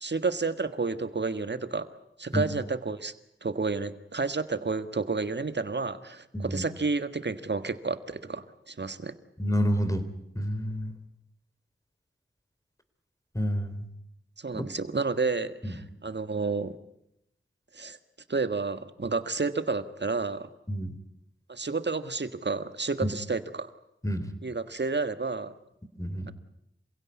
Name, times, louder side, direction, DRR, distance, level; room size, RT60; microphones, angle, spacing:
voice 1, 0.0-1.9 2.2-3.1 3.4-9.2 14.4-16.8 17.7-18.0 18.3-20.5 21.5-23.7 24.4-25.5, right 4 dB, 55° right, 11 dB, 1.6 m, -30 dB
voice 2, 6.3-6.6 9.4-10.0 10.4-10.9 13.3-13.9 14.5-14.6 15.6-15.7 20.7-20.9 23.0-23.1 24.0-24.3 26.0-26.3, equal, 15° left, 10 dB, 3.6 m, -28 dB
27.5 x 16.5 x 9.6 m, 0.82 s
cardioid pair, 45°, 21 cm